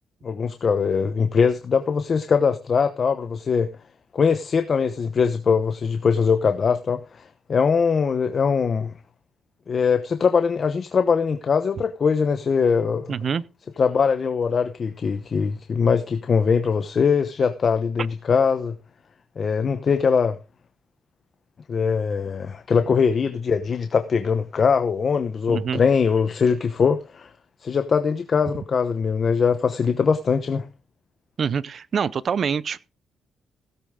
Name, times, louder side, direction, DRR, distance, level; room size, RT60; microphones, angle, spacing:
voice 1, 0.2-3.7 4.1-8.9 9.7-13.1 13.8-18.7 19.4-20.4 21.7-27.3 27.6-30.7, left 6 dB, 45° left, 0.9 m, -22 dB
voice 2, 13.1-13.4 25.5-25.8 31.4-32.9, right 6 dB, 50° right, 0.6 m, -25 dB
16.5 x 8.4 x 3.7 m
cardioid pair, 100°, 0 cm